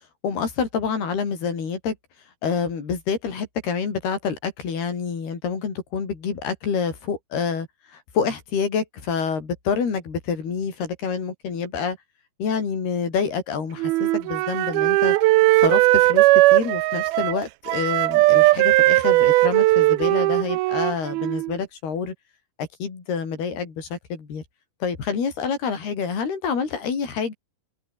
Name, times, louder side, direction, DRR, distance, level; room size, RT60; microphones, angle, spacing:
voice 1, 0.2-2.0 2.4-12.0 12.4-15.2 15.6-22.1 22.6-24.4 24.8-27.3, left 6 dB, 85° left, 7.0 m, -27 dB
Wind instrument woodwind instrument, 13.8-21.5, right 19 dB, 80° right, 2.6 m, -18 dB
omnidirectional pair, 4.4 m